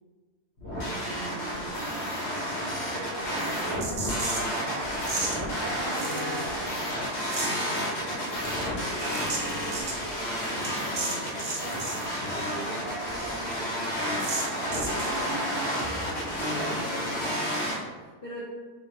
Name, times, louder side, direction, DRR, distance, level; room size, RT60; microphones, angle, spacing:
sound 1, 0.6-17.7, equal, 55° left, 1.0 m, -31 dB
voice 1, 0.9-1.9 2.9-5.2 5.6-6.9 7.7-15.9 16.5-17.3, right 3 dB, 90° right, 0 dB, 1.3 m, -41 dB
sound 2, 3.5-4.6 5.0-5.4 5.9-6.8 7.0-7.6 8.2-12.0 12.3-12.4 12.7-12.8 13.1-13.2 13.5-13.6 14.2-15.2, right 3 dB, 60° right, 1.0 m, -35 dB
voice 2, 16.2-18.4, equal, 75° left, -4 dB, 0.5 m, -42 dB
3.4 x 2.8 x 3.2 m, 1.4 s
omnidirectional pair, 1.6 m